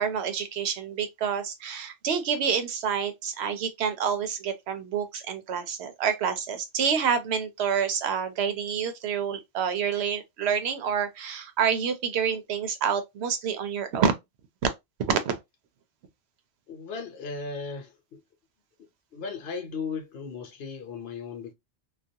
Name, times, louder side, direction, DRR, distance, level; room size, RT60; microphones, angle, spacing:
voice 1, 0.0-14.1 15.1-15.4, right 7 dB, 75° right, 0.8 m, -28 dB
voice 2, 16.7-18.2 19.1-21.5, left 5 dB, 65° left, 0.9 m, -36 dB
2.4 x 2.3 x 2.6 m
omnidirectional pair, 1.1 m